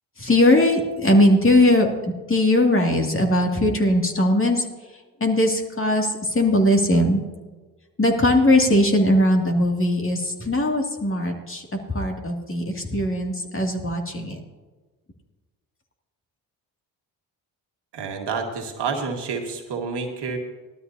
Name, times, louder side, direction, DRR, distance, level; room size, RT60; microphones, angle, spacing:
voice 1, 0.2-1.9 2.3-4.7 5.2-7.2 8.0-14.4, left 1 dB, 25° left, 2 dB, 2.4 m, -20 dB
voice 2, 17.9-20.4, right 5 dB, 60° right, 3 dB, 1.9 m, -29 dB
17.5 x 12.5 x 2.8 m, 1.3 s
hypercardioid pair, 50°, 46 cm